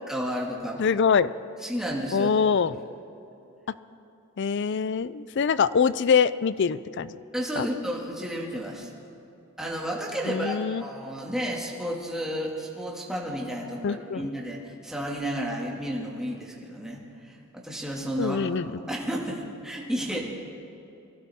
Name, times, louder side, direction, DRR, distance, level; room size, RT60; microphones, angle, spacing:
voice 1, 0.1-0.8 1.6-2.3 7.3-8.9 9.6-18.4 18.9-20.2, equal, 5° right, -3 dB, 2.2 m, -32 dB
voice 2, 0.8-1.3 2.1-2.8 4.4-7.2 7.6-7.7 10.3-10.8 13.8-14.3 18.2-18.8, left 6 dB, 55° left, 16 dB, 0.4 m, -24 dB
23.0 x 16.0 x 3.6 m, 2.8 s
head